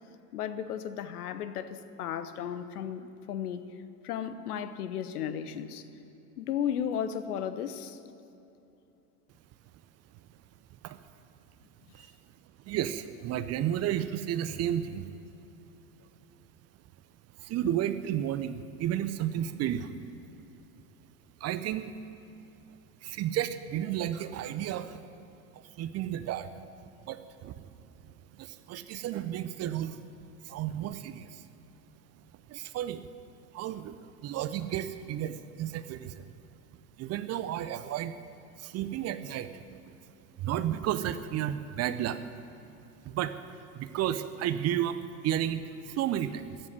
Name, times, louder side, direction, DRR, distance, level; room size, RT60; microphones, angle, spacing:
voice 1, 0.3-3.6 4.0-5.9 6.4-8.0, left 9 dB, 70° left, 11 dB, 1.0 m, -34 dB
voice 2, 12.7-15.1 17.4-19.9 21.4-21.9 23.0-25.0 25.5-26.5 27.0-27.6 28.3-30.0 30.4-31.5 32.5-33.0 33.5-36.2 37.0-38.1 38.6-39.8 40.4-42.2 43.0-43.4 43.7-46.6, right 11 dB, 35° right, 12 dB, 0.6 m, -32 dB
15.0 x 7.4 x 9.5 m, 2.9 s
figure-of-eight pair, 80°, 47 cm